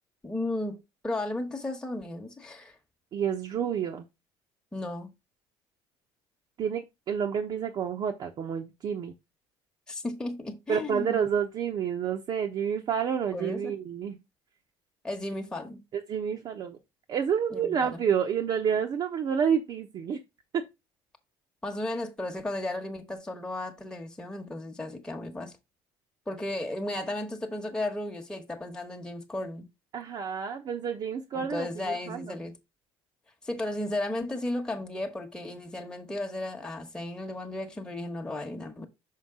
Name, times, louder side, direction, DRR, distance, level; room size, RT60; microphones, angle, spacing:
voice 1, 0.2-2.7 4.7-5.1 9.9-11.2 13.3-13.7 15.0-15.8 17.5-18.0 21.6-25.6 26.3-29.7 31.3-32.5 33.4-38.9, left 1 dB, 10° left, 1.2 m, -34 dB
voice 2, 3.1-4.1 6.6-6.8 7.1-9.1 10.7-14.2 15.9-16.8 17.1-20.2 20.5-20.6 29.9-32.3, right 7 dB, 50° right, 0.9 m, -29 dB
5.7 x 5.2 x 3.7 m
cardioid pair, 105°, 10 cm